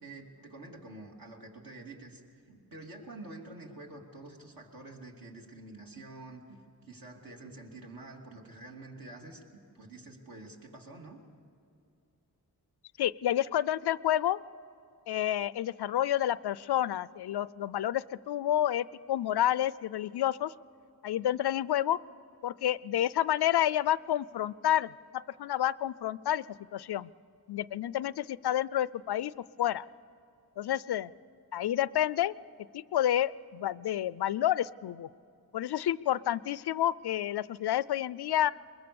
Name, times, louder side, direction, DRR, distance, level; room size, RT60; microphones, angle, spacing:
voice 1, 0.0-2.2 2.5-11.2, right 2 dB, 60° right, 0 dB, 3.0 m, -48 dB
voice 2, 13.0-14.4 15.1-20.5 21.0-22.0 22.4-24.9 25.4-27.1 27.5-29.3 29.6-29.9 30.6-31.1 31.5-32.3 32.7-35.1 35.5-38.5, left 12 dB, 80° left, 19 dB, 0.5 m, -29 dB
22.0 x 21.5 x 7.0 m, 2.6 s
wide cardioid pair, 80°, 38 cm